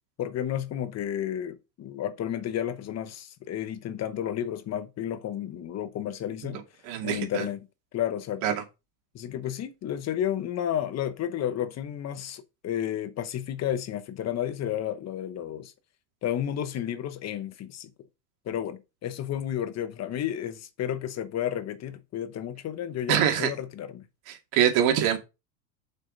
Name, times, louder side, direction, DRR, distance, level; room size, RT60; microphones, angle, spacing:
voice 1, 0.2-6.6 7.0-7.6 7.9-8.6 9.1-15.7 16.2-17.9 18.5-24.0, left 10 dB, 35° left, 1.0 m, -32 dB
voice 2, 6.8-7.5 8.4-8.5 23.1-23.5 24.3-25.2, right 9 dB, 60° right, 2.5 m, -24 dB
7.1 x 5.7 x 4.0 m
supercardioid pair, 115°, 47 cm